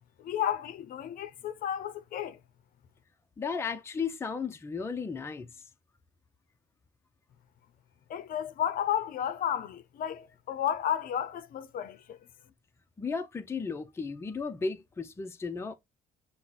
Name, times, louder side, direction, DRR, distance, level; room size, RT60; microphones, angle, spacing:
voice 1, 0.2-2.4 8.1-12.2, left 10 dB, 55° left, 0.6 m, -32 dB
voice 2, 3.4-5.5 13.0-15.7, left 5 dB, 15° left, 0.5 m, -34 dB
6.1 x 2.1 x 3.8 m
cardioid pair, 110°, 17 cm